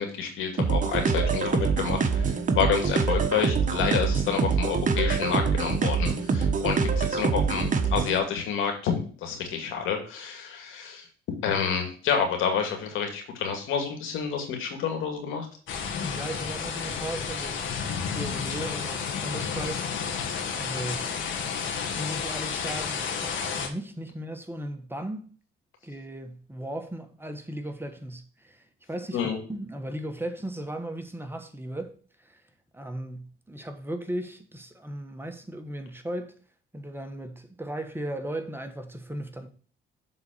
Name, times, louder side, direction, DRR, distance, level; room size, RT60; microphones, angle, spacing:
voice 1, 0.0-11.1 11.4-15.5 29.1-29.4, left 7 dB, 90° left, 2.3 m, -29 dB
sound 1, 0.6-8.2, right 5 dB, 40° right, 1.2 m, -25 dB
voice 2, 6.6-7.1 16.0-20.2 20.5-21.1 22.0-25.3 25.8-29.2 29.5-31.9 32.2-32.4 32.7-36.3 36.7-39.5, right 1 dB, 10° right, 1.3 m, -37 dB
sound 2, 15.7-23.7, left 6 dB, 75° left, 1.7 m, -31 dB
7.0 x 4.2 x 6.7 m
cardioid pair, 90°, 20 cm